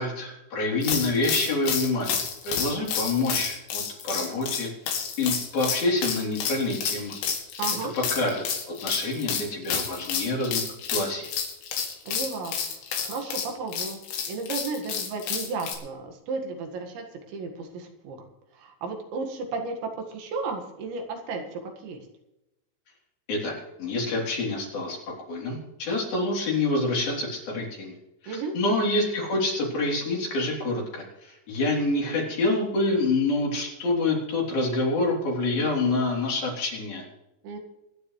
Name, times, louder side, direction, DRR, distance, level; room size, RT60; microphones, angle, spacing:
voice 1, 0.0-2.1 2.4-4.7 5.2-7.2 8.2-10.6 10.9-11.3 23.3-25.0 25.3-28.0 28.2-37.0, left 2 dB, 55° left, -2 dB, 5.0 m, -27 dB
sound 1, 0.8-15.7, left 7 dB, 75° left, 4.7 m, -30 dB
voice 2, 7.6-7.9 12.1-12.6 13.0-18.2 18.5-22.1 28.3-28.5 37.4-37.6, right 4 dB, 75° right, 3 dB, 4.0 m, -34 dB
24.5 x 10.5 x 3.2 m, 0.92 s
omnidirectional pair, 5.4 m